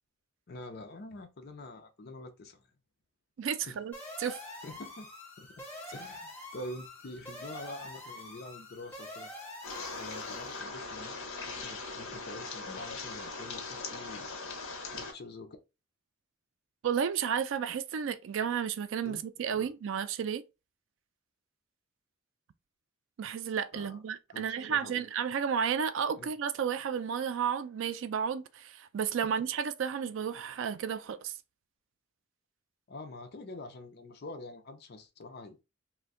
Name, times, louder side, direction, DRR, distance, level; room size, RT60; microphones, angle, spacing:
voice 1, 0.5-2.7 3.6-3.8 4.6-5.1 5.4-5.6 5.9-9.3 9.9-14.3 14.9-15.6 19.0-19.2 19.5-19.7 23.7-24.0 24.3-25.0 26.2-26.3 32.9-35.6, left 2 dB, 50° left, 0.5 m, -46 dB
voice 2, 3.4-3.9 4.2-4.4 16.8-20.4 23.2-31.3, right 7 dB, 65° right, 0.3 m, -32 dB
sound 1, 3.9-10.6, left 1 dB, 5° left, 0.9 m, -46 dB
sound 2, 9.6-15.1, left 3 dB, 80° left, 0.8 m, -40 dB
2.5 x 2.2 x 3.6 m
head